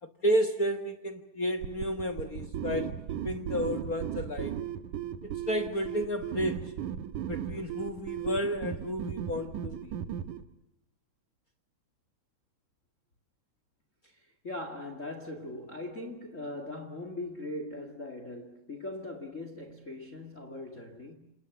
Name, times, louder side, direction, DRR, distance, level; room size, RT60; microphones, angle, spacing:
voice 1, 0.0-3.0 3.2-4.6 5.2-6.7 7.3-9.9, equal, 45° left, 1.1 m, -32 dB
sound 1, 1.6-10.4, right 9 dB, 75° right, 2.6 m, -36 dB
voice 2, 14.0-21.2, left 2 dB, 25° left, 2.0 m, -40 dB
28.5 x 28.0 x 7.0 m
omnidirectional pair, 3.7 m